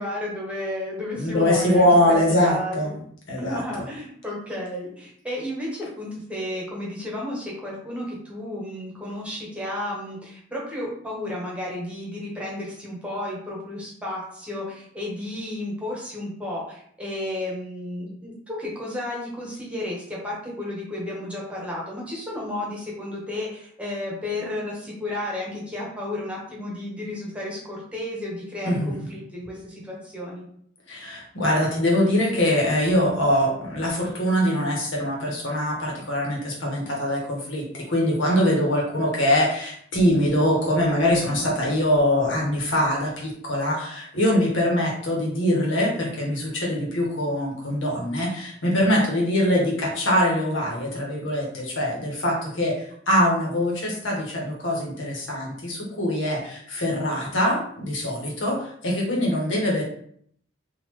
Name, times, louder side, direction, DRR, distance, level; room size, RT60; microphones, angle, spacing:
voice 1, 0.0-2.2 2.4-2.9 3.4-30.4, left 1 dB, 5° right, -4 dB, 1.1 m, -32 dB
voice 2, 1.1-3.0 3.3-3.6 28.7-28.9 30.9-59.8, left 1 dB, 90° left, -2 dB, 1.2 m, -23 dB
3.9 x 2.5 x 3.0 m, 0.64 s
head